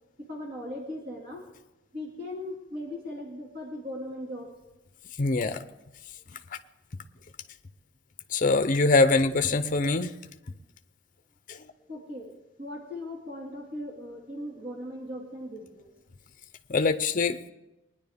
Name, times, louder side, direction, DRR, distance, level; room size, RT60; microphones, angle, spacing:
voice 1, 0.3-1.4 1.9-4.5 11.9-12.3 12.6-15.9, left 1 dB, 50° right, -1 dB, 2.0 m, -38 dB
voice 2, 5.2-5.6 8.3-10.1 16.7-17.4, left 3 dB, 40° left, 9 dB, 0.6 m, -23 dB
21.0 x 10.0 x 3.5 m, 0.98 s
head